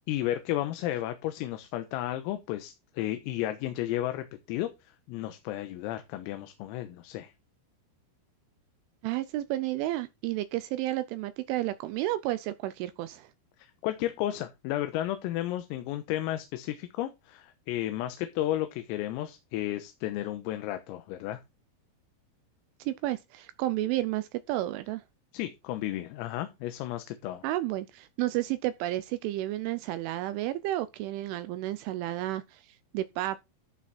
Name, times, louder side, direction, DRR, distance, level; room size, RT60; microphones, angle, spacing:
voice 1, 0.1-4.7 5.1-7.3 13.8-21.4 25.3-27.4, left 13 dB, 85° left, 3.8 m, -33 dB
voice 2, 9.0-13.3 22.8-25.0 27.4-33.4, right 15 dB, 80° right, 2.9 m, -31 dB
14.5 x 6.0 x 4.3 m
omnidirectional pair, 6.0 m